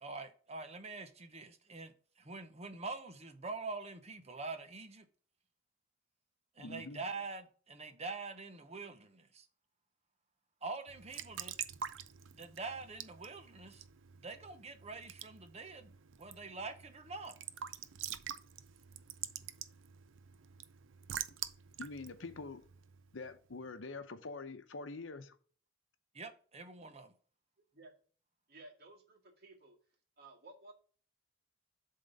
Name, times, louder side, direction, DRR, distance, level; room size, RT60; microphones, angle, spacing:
voice 1, 0.0-5.1 6.6-9.5 10.6-11.6 12.3-13.8 14.2-15.9 16.2-17.4 26.1-27.1, right 3 dB, 35° right, 0.9 m, -45 dB
voice 2, 6.6-7.0 21.8-22.6 23.1-25.4, left 3 dB, 75° left, 0.8 m, -45 dB
Raindrop / Drip / Trickle dribble, 10.9-23.3, right 9 dB, 80° right, 0.5 m, -47 dB
voice 3, 28.5-29.8 30.2-30.7, right 2 dB, 55° right, 2.1 m, -56 dB
7.6 x 3.8 x 5.2 m
head